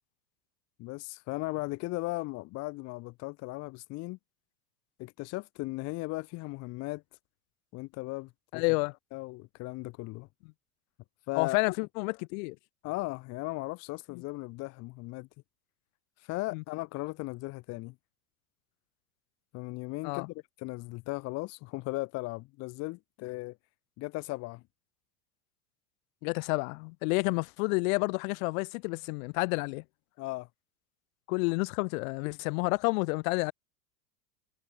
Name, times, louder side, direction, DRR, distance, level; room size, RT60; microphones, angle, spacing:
voice 1, 0.8-4.2 5.0-7.0 7.7-8.6 9.1-10.3 11.3-11.6 12.8-15.3 16.2-17.9 19.5-23.6 24.0-24.6 30.2-30.5, left 22 dB, 35° left, 0.4 m, -37 dB
voice 2, 8.5-9.0 11.4-12.6 16.5-16.6 20.0-20.3 26.2-29.8 31.3-33.5, left 30 dB, 60° left, 1.1 m, -30 dB
hypercardioid pair, 95°, 46 cm